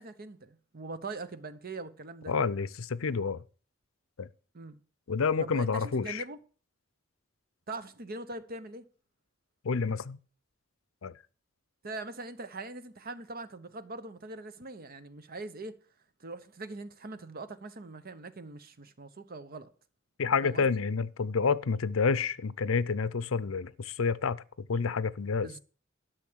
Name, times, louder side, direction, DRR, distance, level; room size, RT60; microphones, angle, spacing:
voice 1, 0.0-2.3 4.5-4.8 5.4-6.4 7.7-8.8 11.8-15.8 16.2-19.7 20.4-20.8 25.4-25.6, right 2 dB, 50° right, 1.0 m, -42 dB
voice 2, 2.3-3.4 4.2-4.3 5.1-6.2 9.6-10.2 11.0-11.1 20.2-25.5, left 5 dB, 80° left, 0.6 m, -29 dB
12.0 x 6.3 x 6.3 m
head